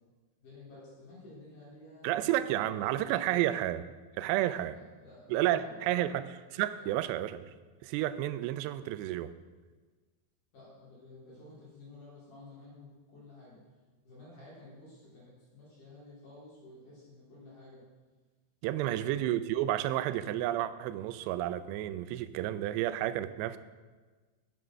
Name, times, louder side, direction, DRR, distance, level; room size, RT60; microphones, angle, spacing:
voice 1, 0.4-3.6 4.4-6.1 6.7-6.9 10.5-13.6 14.0-17.8 18.8-19.3, left 2 dB, 50° left, 5.0 m, -53 dB
voice 2, 2.0-3.8 4.2-4.8 5.3-7.5 7.8-9.3 18.6-23.6, right 13 dB, 90° right, 2.7 m, -31 dB
11.0 x 7.0 x 6.2 m
omnidirectional pair, 4.8 m